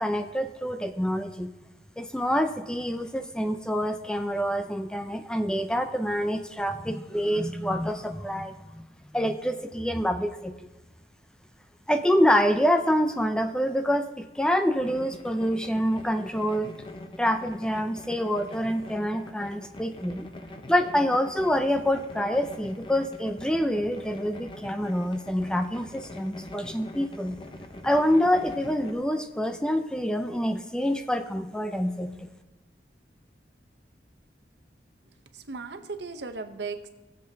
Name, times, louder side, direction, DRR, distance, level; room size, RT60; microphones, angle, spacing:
voice 1, 0.0-1.5 2.0-8.9 9.1-10.7 11.9-16.7 17.2-20.3 20.7-27.4 27.8-32.3, equal, 5° left, 7 dB, 0.4 m, -26 dB
sound 1, 14.8-28.9, left 1 dB, 30° left, 0.8 m, -43 dB
voice 2, 35.3-36.9, right 4 dB, 75° right, 8 dB, 0.9 m, -36 dB
19.5 x 7.6 x 2.8 m, 1.1 s
head